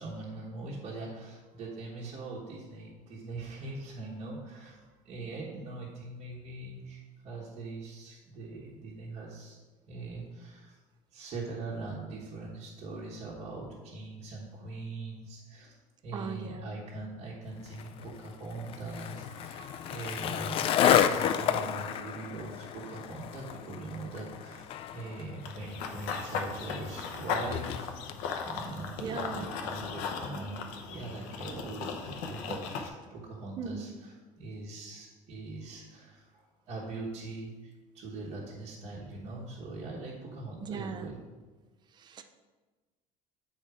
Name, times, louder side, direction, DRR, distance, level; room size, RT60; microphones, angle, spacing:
voice 1, 0.0-9.6 9.9-10.8 11.1-15.8 16.0-24.7 24.9-27.9 28.4-41.1, right 3 dB, 45° right, -6 dB, 1.3 m, -42 dB
voice 2, 16.1-16.7 29.0-29.4 33.6-33.8 40.6-41.1 42.0-42.2, right 6 dB, 30° right, 8 dB, 0.5 m, -38 dB
Skateboard, 17.7-28.2, left 9 dB, 40° left, 0.4 m, -31 dB
Run / Bird vocalization bird call bird song, 25.4-32.9, left 6 dB, 85° left, 0.8 m, -37 dB
8.0 x 4.2 x 4.8 m, 1.3 s
cardioid pair, 155°, 14 cm